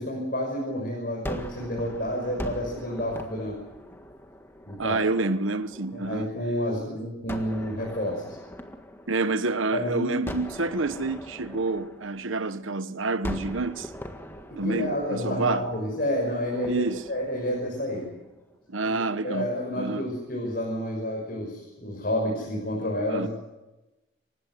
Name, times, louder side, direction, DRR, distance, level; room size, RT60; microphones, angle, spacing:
voice 1, 0.0-3.6 4.7-5.0 5.9-8.4 9.7-10.1 14.5-18.1 18.8-23.3, equal, 50° left, 6.2 m, -30 dB
Gunshot gunfire, 1.2-6.4 7.3-9.7 10.3-12.7 13.2-18.4, equal, 10° left, 1.7 m, -41 dB
voice 2, 4.8-6.3 9.1-13.9 14.6-15.7 16.7-17.1 18.7-20.1 23.1-23.3, right 3 dB, 85° right, 1.2 m, -28 dB
28.0 x 16.0 x 7.9 m
head